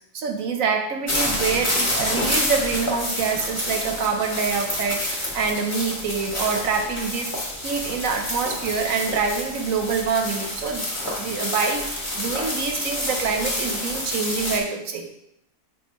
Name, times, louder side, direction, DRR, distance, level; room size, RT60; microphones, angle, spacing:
voice 1, 0.1-7.3 7.6-10.9 11.2-15.1, right 5 dB, 60° right, 4 dB, 1.1 m, -26 dB
sound 1, 1.1-14.6, left 1 dB, 20° left, 1.4 m, -28 dB
10.5 x 3.6 x 3.0 m, 0.77 s
omnidirectional pair, 1.7 m